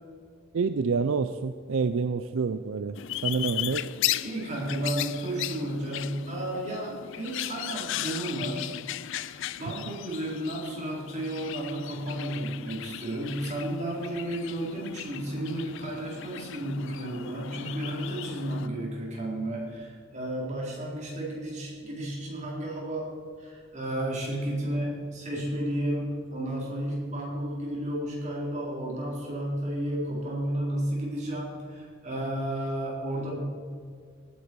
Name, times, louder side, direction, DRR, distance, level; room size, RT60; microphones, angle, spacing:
voice 1, 0.5-3.9, right 5 dB, 75° right, 11 dB, 0.5 m, -28 dB
sound 1, 3.0-18.7, left 13 dB, 65° left, 0.4 m, -36 dB
voice 2, 4.2-8.7 9.0-33.5, right 1 dB, 35° right, -3 dB, 4.1 m, -32 dB
17.5 x 9.8 x 4.7 m, 2.1 s
head